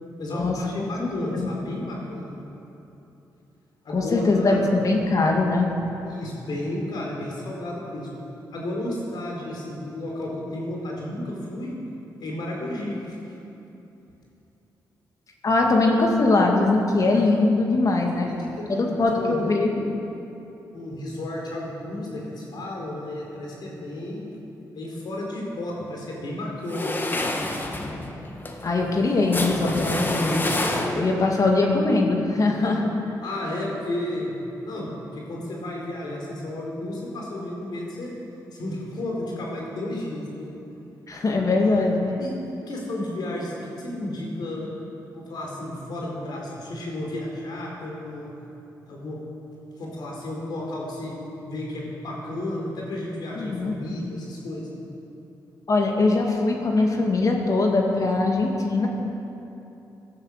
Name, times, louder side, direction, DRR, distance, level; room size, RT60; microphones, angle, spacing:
voice 1, 0.2-2.3 3.8-4.6 6.0-8.1 8.5-11.7 12.2-13.2 18.1-19.5 20.7-24.3 24.7-27.1 32.6-32.8 33.2-34.3 34.6-38.1 38.5-40.5 41.6-41.9 42.2-42.3 42.7-44.7 45.0-48.3 48.9-49.2 49.8-54.7, left 1 dB, 70° left, -2 dB, 4.4 m, -32 dB
voice 2, 1.0-1.5 3.9-5.7 15.4-18.3 18.7-19.8 28.6-30.5 30.9-32.9 41.1-42.0 53.3-53.8 55.7-58.9, left 3 dB, 50° left, 1 dB, 2.2 m, -21 dB
sound 1, 26.7-31.3, left 2 dB, 25° left, 1.7 m, -28 dB
15.0 x 12.0 x 6.6 m, 3.0 s
cardioid pair, 65°, 8 cm